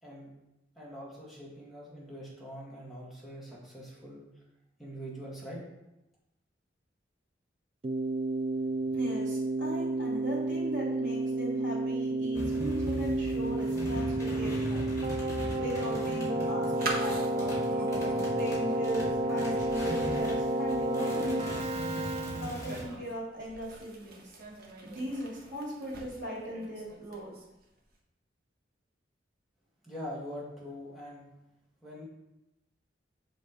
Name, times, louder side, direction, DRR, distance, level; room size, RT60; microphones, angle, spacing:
voice 1, 0.8-4.2 4.8-5.6 29.8-31.3 31.8-32.0, equal, ahead, -7 dB, 1.8 m, -43 dB
Keyboard (musical), 7.8-22.9, right 1 dB, 35° right, 0.4 m, -31 dB
voice 2, 8.9-14.9 15.6-17.6 18.4-21.7 22.4-24.2 24.8-27.3, equal, 80° right, -8 dB, 2.6 m, -38 dB
sound 1, 12.3-20.4 20.7-22.8, equal, 15° left, 2.1 m, -39 dB
sound 2, 15.9-27.6, right 3 dB, 55° right, 1.0 m, -44 dB
7.2 x 3.4 x 4.9 m, 0.91 s
head